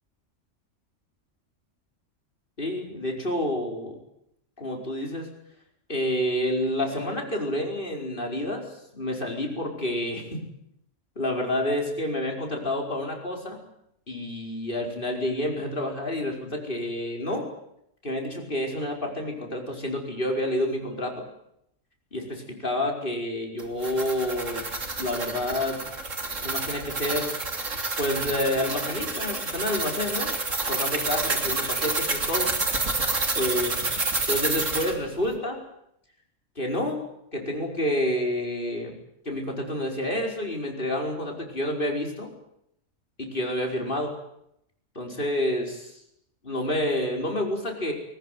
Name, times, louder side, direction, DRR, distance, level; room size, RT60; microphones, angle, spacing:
voice 1, 2.6-4.0 4.6-5.3 5.9-8.6 8.9-10.4 11.2-13.6 14.1-17.5 18.0-21.3 22.1-24.7 25.0-25.8 26.4-27.4 28.0-30.3 30.7-32.5 33.4-34.0 34.3-35.6 36.6-37.1 37.3-38.9 39.3-42.3 43.2-44.1 45.0-45.9 46.4-47.9, left 1 dB, 45° left, 2 dB, 5.3 m, -29 dB
sound 1, 23.6-34.9, right 3 dB, 75° right, 3.4 m, -29 dB
21.5 x 19.5 x 9.4 m, 0.76 s
omnidirectional pair, 1.3 m